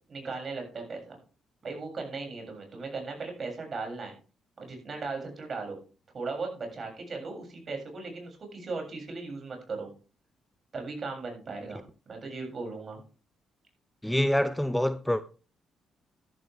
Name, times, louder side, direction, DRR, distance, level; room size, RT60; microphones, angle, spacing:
voice 1, 0.1-1.2 1.6-4.1 4.6-5.8 6.1-9.9 10.7-13.0, right 3 dB, 45° right, 7.2 m, -37 dB
voice 2, 14.0-15.2, left 1 dB, 5° left, 0.7 m, -26 dB
14.0 x 12.5 x 3.5 m
cardioid pair, 90°, 0 cm